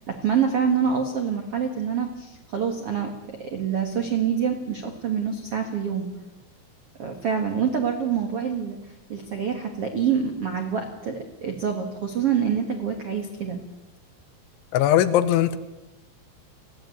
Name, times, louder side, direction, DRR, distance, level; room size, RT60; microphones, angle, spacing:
voice 1, 0.1-3.1 3.4-6.1 7.0-8.8 9.1-13.6, right 7 dB, 80° right, 4 dB, 1.3 m, -26 dB
voice 2, 14.7-15.6, left 11 dB, 80° left, 13 dB, 3.2 m, -19 dB
19.0 x 16.0 x 9.3 m, 1.0 s
omnidirectional pair, 5.6 m